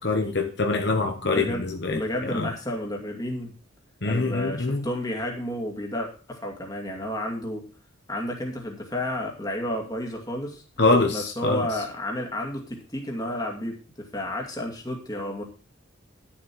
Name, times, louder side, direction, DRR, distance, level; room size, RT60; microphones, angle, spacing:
voice 1, 0.0-2.5 4.0-4.8 10.8-11.7, left 3 dB, 60° left, 4 dB, 1.1 m, -24 dB
voice 2, 1.2-1.7 1.9-3.5 4.0-7.7 8.1-10.6 11.1-15.4, left 1 dB, 20° left, 1 dB, 2.3 m, -31 dB
11.5 x 7.3 x 4.5 m, 0.38 s
head